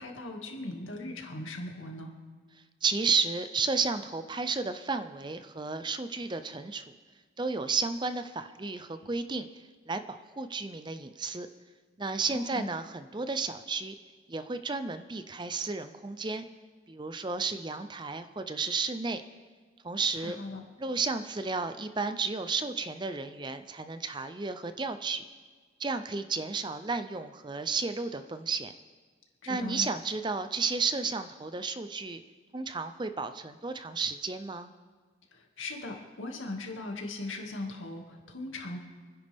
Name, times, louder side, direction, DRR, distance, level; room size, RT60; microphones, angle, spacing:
voice 1, 0.0-2.1 12.3-12.7 20.2-20.6 29.4-29.9 35.3-38.8, left 2 dB, 85° left, 1 dB, 2.2 m, -39 dB
voice 2, 2.8-6.8 7.4-9.5 9.9-11.5 12.0-13.9 14.3-16.5 16.9-19.2 19.8-20.4 20.8-25.2 25.8-28.7 29.5-32.2 32.5-34.7, right 4 dB, 25° right, 10 dB, 0.5 m, -32 dB
28.0 x 10.5 x 3.6 m, 1.5 s
head